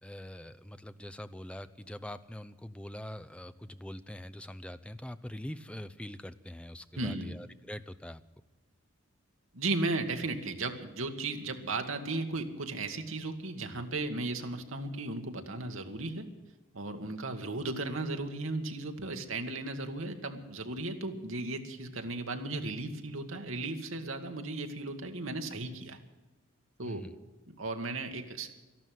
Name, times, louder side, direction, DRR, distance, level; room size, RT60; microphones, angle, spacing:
voice 1, 0.0-8.2 26.8-27.2, left 1 dB, 5° left, 12 dB, 0.5 m, -43 dB
voice 2, 7.0-7.3 9.5-16.3 16.7-26.0 26.8-27.0 27.5-28.5, right 2 dB, 70° right, 5 dB, 1.7 m, -35 dB
13.0 x 12.0 x 9.2 m, 1.2 s
head